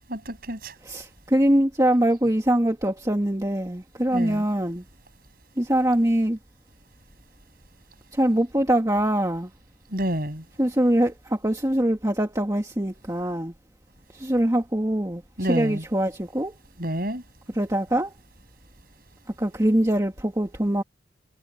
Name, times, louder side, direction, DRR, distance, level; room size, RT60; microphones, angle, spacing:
voice 1, 0.1-0.7 4.1-4.4 9.9-10.4 15.4-15.8 16.8-17.2, right 1 dB, 50° right, 7.0 m, -28 dB
voice 2, 0.8-4.8 5.6-6.4 8.1-9.5 10.6-13.5 14.1-16.6 17.5-18.1 19.4-20.8, right 1 dB, 15° right, 1.7 m, -23 dB
head